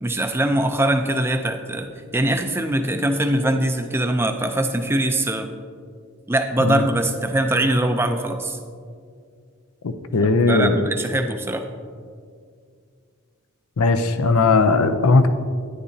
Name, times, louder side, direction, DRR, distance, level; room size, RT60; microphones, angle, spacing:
voice 1, 0.0-5.5 6.3-8.6 10.5-11.7, right 1 dB, 10° right, 6 dB, 0.4 m, -22 dB
voice 2, 9.8-10.8 13.8-15.3, left 3 dB, 85° left, 9 dB, 0.5 m, -18 dB
10.0 x 9.9 x 2.7 m, 2.2 s
head